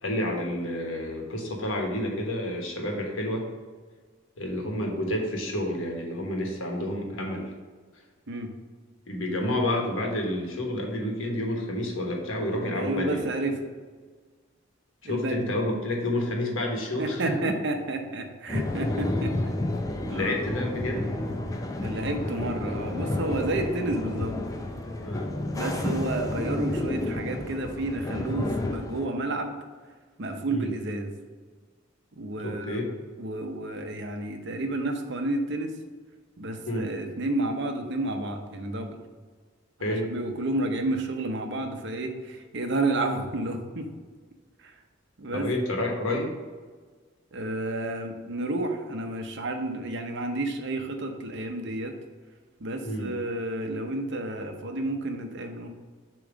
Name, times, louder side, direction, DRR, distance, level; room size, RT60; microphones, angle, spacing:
voice 1, 0.0-3.4 4.4-7.5 9.1-13.2 15.0-17.3 20.0-21.1 25.0-25.3 30.5-30.7 32.4-32.8 36.7-36.9 39.8-40.1 45.3-46.3 52.8-53.1, left 1 dB, 90° left, 1 dB, 1.3 m, -29 dB
voice 2, 12.8-13.6 15.0-15.5 17.0-19.5 20.1-20.4 21.8-24.4 25.5-29.6 30.2-31.1 32.1-32.9 33.2-35.8 36.4-39.0 39.8-43.9 44.6-44.7 45.2-45.5 47.3-51.9 52.6-55.7, right 2 dB, 65° right, 5 dB, 0.8 m, -31 dB
sound 1, 18.5-29.0, left 1 dB, 20° left, 0.5 m, -30 dB
6.9 x 3.1 x 5.0 m, 1.5 s
head